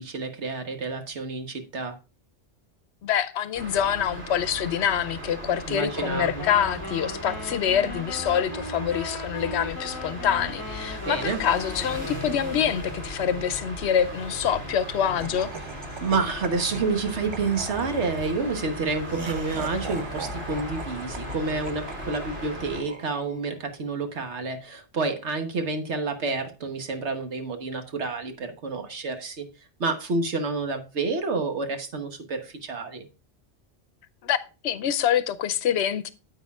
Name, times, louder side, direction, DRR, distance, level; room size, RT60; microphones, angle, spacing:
voice 1, 0.0-2.0 5.7-6.5 11.1-11.4 16.0-29.5 29.8-33.1, right 3 dB, 80° right, 1.5 m, -29 dB
voice 2, 3.0-15.5 34.2-34.4 34.6-36.1, left 9 dB, 75° left, 0.9 m, -26 dB
sound 1, 3.5-22.8, equal, 65° right, 3.3 m, -37 dB
Wind instrument woodwind instrument, 5.9-13.1, left 2 dB, 20° left, 1.0 m, -38 dB
Laughter, 15.2-23.6, right 4 dB, 30° right, 0.5 m, -41 dB
9.4 x 8.0 x 2.3 m
omnidirectional pair, 1.1 m